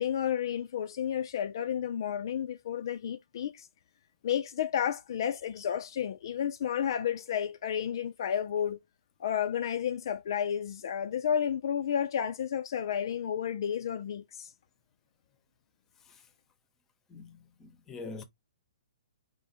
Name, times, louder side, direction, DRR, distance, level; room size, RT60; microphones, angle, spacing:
voice 1, 0.0-3.7 4.2-8.8 9.2-14.5, left 9 dB, 55° left, 0.4 m, -31 dB
voice 2, 17.1-18.2, left 3 dB, 15° left, 0.7 m, -45 dB
4.8 x 2.1 x 4.2 m
hypercardioid pair, 160°, 3 cm